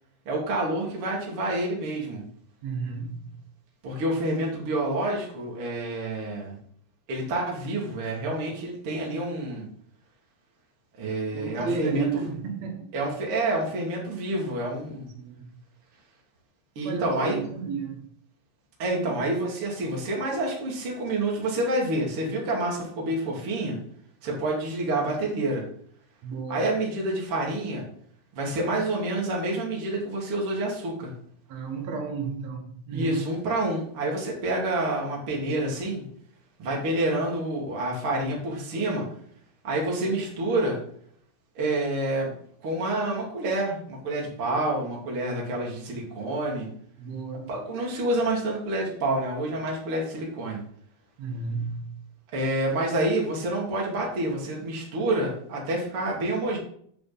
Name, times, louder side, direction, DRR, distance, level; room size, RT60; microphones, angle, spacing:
voice 1, 0.3-2.2 3.8-6.6 7.1-9.7 11.0-12.3 12.9-15.1 16.8-17.4 18.8-23.8 24.2-25.6 26.5-27.9 28.3-31.1 32.9-36.0 36.6-39.1 39.6-40.8 41.6-42.3 42.6-46.7 47.5-50.6 52.3-56.6, right 1 dB, 40° right, -2 dB, 2.4 m, -28 dB
voice 2, 2.6-3.3 11.3-12.9 15.1-15.5 16.8-18.0 26.2-26.7 31.5-33.2 47.0-47.5 51.2-52.0, right 5 dB, 65° right, 3 dB, 1.7 m, -32 dB
9.0 x 7.6 x 4.0 m, 0.62 s
omnidirectional pair, 4.7 m